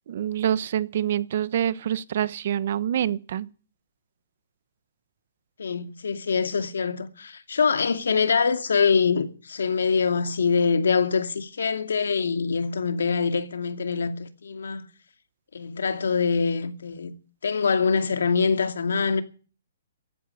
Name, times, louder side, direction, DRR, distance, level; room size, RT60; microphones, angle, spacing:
voice 1, 0.1-3.5, right 10 dB, 50° right, 1.0 m, -26 dB
voice 2, 5.6-14.8 15.5-17.1 17.4-19.2, left 5 dB, 85° left, 2.3 m, -24 dB
14.5 x 9.3 x 9.7 m
hypercardioid pair, 160°, 0 cm